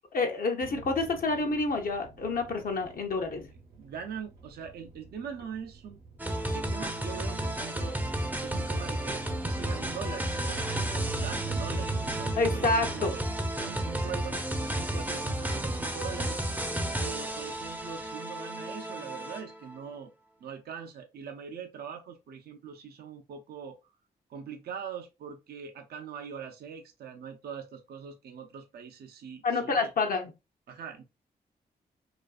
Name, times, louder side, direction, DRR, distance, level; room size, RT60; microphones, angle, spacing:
voice 1, 0.1-3.5 12.4-13.1 29.4-30.2, left 3 dB, 55° left, 0.6 m, -28 dB
sound 1, 0.6-18.1, right 6 dB, 90° right, 0.8 m, -46 dB
voice 2, 3.8-6.0 6.5-8.0 8.4-13.2 13.6-16.4 17.0-20.1 20.4-23.8 24.3-29.9 30.7-31.0, right 7 dB, 65° right, 0.4 m, -42 dB
sound 2, 6.2-19.7, right 1 dB, 10° right, 0.5 m, -32 dB
2.4 x 2.3 x 2.3 m
cardioid pair, 55°, 17 cm